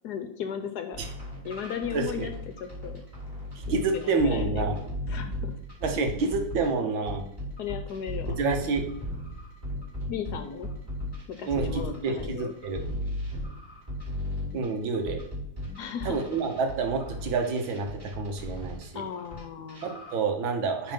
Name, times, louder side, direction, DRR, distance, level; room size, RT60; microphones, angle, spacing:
voice 1, 0.0-1.0 1.4-2.3 2.6-3.0 3.7-5.5 7.6-8.4 10.1-10.7 11.3-12.5 15.8-16.3 18.9-19.9, left 8 dB, 70° left, 8 dB, 1.1 m, -36 dB
sound 1, 0.9-6.7 7.1-19.4 19.7-20.2, left 1 dB, 20° right, 3.5 m, -36 dB
voice 2, 1.9-2.3 3.6-4.8 5.1-5.3 5.8-7.2 8.4-8.9 11.4-12.8 14.5-15.2 16.0-19.0 19.8-20.9, right 4 dB, 80° right, 4 dB, 1.9 m, -28 dB
9.1 x 4.0 x 5.2 m, 0.73 s
omnidirectional pair, 2.1 m